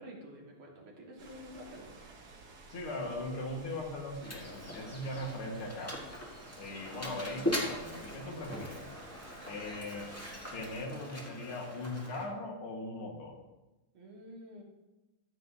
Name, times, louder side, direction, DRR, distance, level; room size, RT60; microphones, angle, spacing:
voice 1, 0.0-2.1 13.9-14.6, equal, 75° right, -2 dB, 2.7 m, -49 dB
sound 1, 1.2-10.9, right 3 dB, 50° right, 1.6 m, -53 dB
voice 2, 2.7-6.1 6.6-8.9 9.5-10.1 10.5-13.4, left 2 dB, 85° left, 0 dB, 2.5 m, -40 dB
Mechanisms, 4.2-12.3, left 1 dB, 10° left, 1.3 m, -40 dB
14.0 x 7.9 x 2.7 m, 1.1 s
omnidirectional pair, 2.3 m